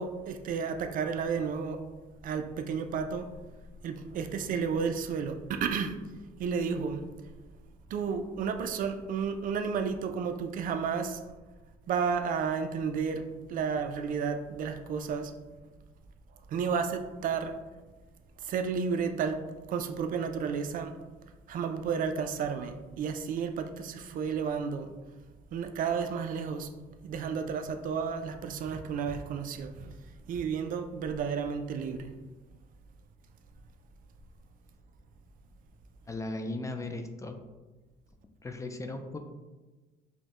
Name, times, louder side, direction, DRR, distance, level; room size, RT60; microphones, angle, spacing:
voice 1, 0.0-1.8 2.2-3.3 3.8-6.0 6.4-7.0 7.9-11.2 11.9-15.3 16.5-17.6 18.4-19.4 19.7-21.0 21.5-24.9 25.5-26.7 27.0-29.9 30.3-32.1, right 6 dB, 55° right, 7 dB, 0.4 m, -32 dB
voice 2, 36.1-37.4 38.4-39.2, left 2 dB, 20° left, 6 dB, 0.3 m, -37 dB
5.3 x 2.1 x 2.9 m, 1.2 s
cardioid pair, 110°, 17 cm